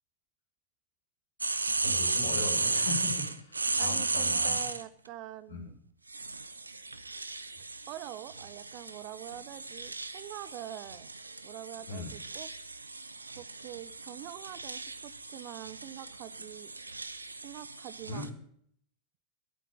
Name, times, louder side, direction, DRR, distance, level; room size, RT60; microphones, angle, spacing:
sound 1, 1.4-4.8 6.1-18.3, right 3 dB, 80° right, 0.7 m, -35 dB
voice 1, 1.8-4.7 5.5-5.7 11.9-12.1 18.1-18.3, left 3 dB, 70° left, 0 dB, 4.2 m, -39 dB
voice 2, 3.8-5.8 7.9-11.1 11.4-12.5 13.4-16.7 17.4-18.3, right 13 dB, 40° right, 17 dB, 0.6 m, -45 dB
13.0 x 8.3 x 7.1 m, 0.65 s
figure-of-eight pair, 90°, 0 cm